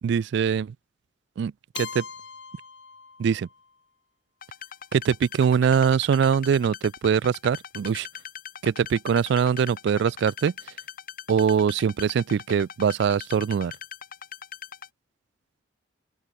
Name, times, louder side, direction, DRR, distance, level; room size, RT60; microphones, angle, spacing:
voice 1, 0.0-0.7 1.4-2.0 3.2-3.5 4.9-8.1 8.6-10.5 11.3-13.7, right 7 dB, 65° right, 0.3 m, -23 dB
Keyboard (musical), 1.7-3.7, left 6 dB, 70° left, 4.5 m, -41 dB
sound 1, 4.4-14.9, left 8 dB, 50° left, 1.4 m, -41 dB
open air
head